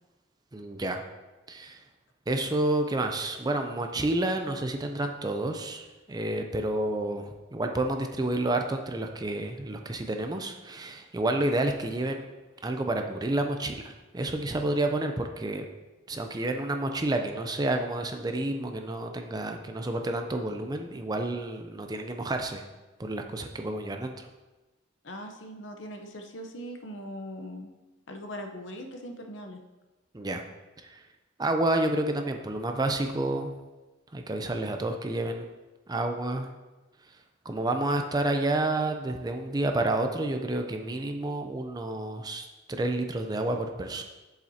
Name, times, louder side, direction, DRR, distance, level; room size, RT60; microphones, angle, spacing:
voice 1, 0.5-1.0 1.5-1.8 2.3-12.2 12.6-15.6 16.1-22.6 23.0-24.3 30.1-30.4 30.8-31.0 31.4-33.5 34.1-35.4 35.9-36.5 37.5-44.0, right 2 dB, 20° right, 5 dB, 0.5 m, -29 dB
voice 2, 25.0-27.7 28.1-29.6, equal, 65° left, 4 dB, 0.9 m, -40 dB
7.5 x 7.3 x 2.8 m, 1.1 s
head